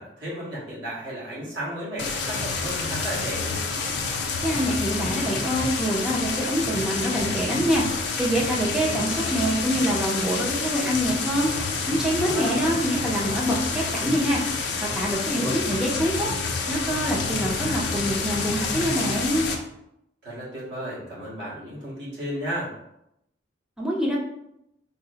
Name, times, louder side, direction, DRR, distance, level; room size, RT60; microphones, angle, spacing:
voice 1, 0.0-3.6 12.2-12.5 20.2-22.7, equal, 65° right, -8 dB, 1.5 m, -33 dB
sound 1, 2.0-19.5, left 4 dB, 60° left, 0.5 m, -28 dB
voice 2, 4.4-7.8 8.2-11.5 11.8-14.4 14.8-16.3 16.7-19.5 23.8-24.2, equal, 5° right, -4 dB, 0.5 m, -25 dB
3.9 x 2.0 x 2.7 m, 0.81 s
head